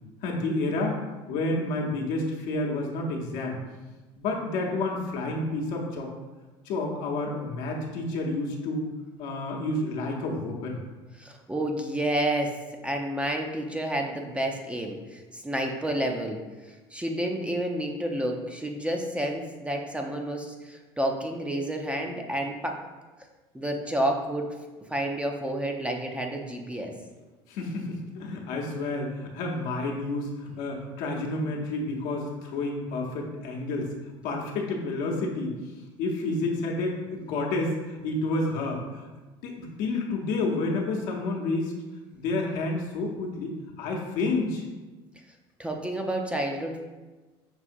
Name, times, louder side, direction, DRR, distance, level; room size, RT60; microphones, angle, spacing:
voice 1, 0.2-1.0 1.3-3.6 4.2-6.1 6.6-8.9 9.2-10.8 27.5-33.9 34.2-35.5 36.0-39.1 39.4-41.7 42.1-44.6, left 2 dB, 75° left, 0 dB, 0.8 m, -30 dB
voice 2, 11.2-12.5 12.8-16.4 16.9-22.8 23.5-24.5 24.9-26.9 45.6-46.8, right 1 dB, 10° right, 2 dB, 0.5 m, -30 dB
6.1 x 2.7 x 2.6 m, 1.2 s
supercardioid pair, 100°, 13 cm